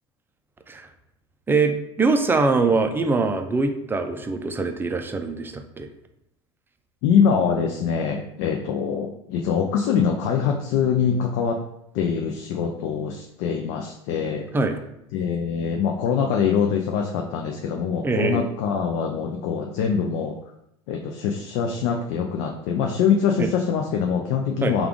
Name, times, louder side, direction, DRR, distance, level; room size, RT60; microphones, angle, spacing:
voice 1, 1.5-5.9 14.5-14.8 18.0-18.4 23.4-23.5 24.6-24.7, right 3 dB, 15° right, 6 dB, 0.4 m, -23 dB
voice 2, 7.0-11.6 11.9-14.5 15.1-20.4 20.9-24.9, left 7 dB, 60° left, 2 dB, 0.4 m, -24 dB
3.4 x 2.4 x 3.6 m, 0.79 s
hypercardioid pair, 85°, 15 cm